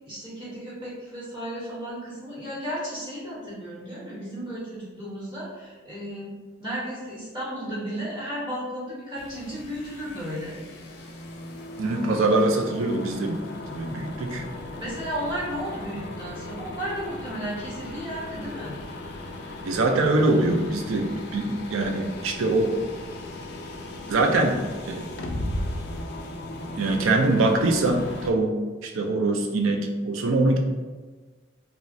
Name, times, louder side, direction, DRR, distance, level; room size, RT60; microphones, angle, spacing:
voice 1, 0.1-10.5 14.8-18.8, equal, 25° right, -9 dB, 1.1 m, -34 dB
sound 1, 9.2-28.3, left 1 dB, 55° left, 0.4 m, -37 dB
voice 2, 11.8-13.4 13.7-14.4 19.6-22.7 24.1-25.0 26.8-30.6, right 2 dB, 85° right, 3 dB, 0.4 m, -23 dB
3.0 x 2.3 x 2.5 m, 1.3 s
head